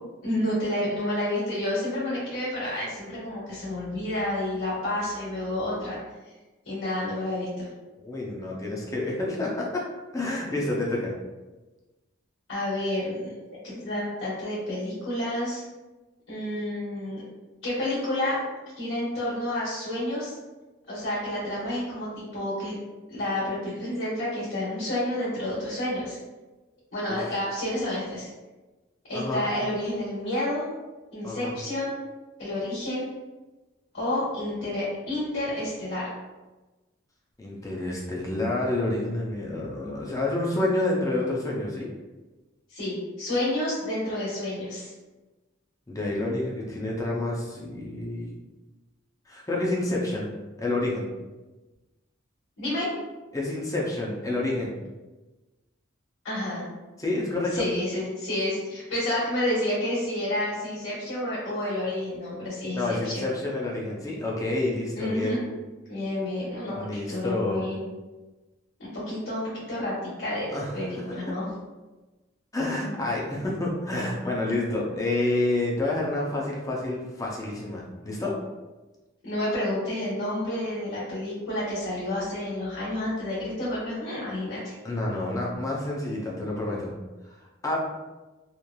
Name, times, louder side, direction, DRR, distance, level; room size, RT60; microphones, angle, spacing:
voice 1, 0.2-6.0 6.6-7.7 12.5-13.3 13.6-15.6 16.3-17.2 17.6-18.4 18.8-20.3 20.9-22.8 23.1-26.2 26.9-28.3 29.1-30.7 31.1-31.9 32.4-33.0 33.9-36.1 42.7-44.9 52.6-52.9 56.2-56.6 57.5-63.3 65.0-65.4 65.9-67.8 68.8-71.5 79.2-84.8, left 1 dB, 85° left, -10 dB, 1.3 m, -30 dB
voice 2, 8.0-9.8 10.1-11.1 27.1-27.4 29.1-29.4 31.2-31.5 37.4-41.9 45.9-48.3 49.3-50.3 50.6-51.1 53.3-54.7 57.0-57.7 62.7-65.4 66.8-67.6 70.5-70.8 72.5-78.3 84.8-86.9 87.2-87.4 87.6-87.8, left 2 dB, 15° left, -3 dB, 0.5 m, -28 dB
2.9 x 2.4 x 2.3 m, 1.2 s
head